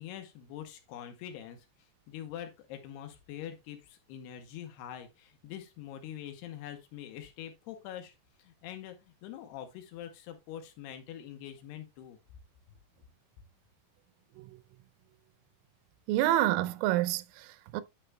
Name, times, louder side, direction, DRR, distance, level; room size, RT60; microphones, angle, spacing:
voice 1, 0.0-12.2, left 10 dB, 85° left, 2.4 m, -44 dB
voice 2, 16.1-17.8, right 14 dB, 85° right, 3.2 m, -28 dB
10.5 x 6.6 x 2.2 m
omnidirectional pair, 5.9 m